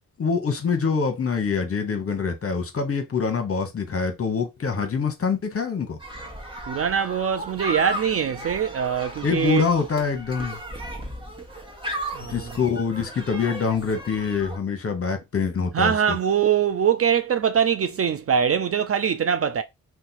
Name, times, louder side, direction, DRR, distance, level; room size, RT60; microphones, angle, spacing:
voice 1, 0.2-6.0 9.2-10.6 12.3-16.2, left 5 dB, 40° left, 1.0 m, -25 dB
sound 1, 6.0-14.6, right 1 dB, 15° right, 1.2 m, -35 dB
voice 2, 6.7-9.7 12.1-12.5 15.7-19.6, right 8 dB, 40° right, 0.4 m, -23 dB
2.8 x 2.3 x 4.0 m
supercardioid pair, 40°, 37 cm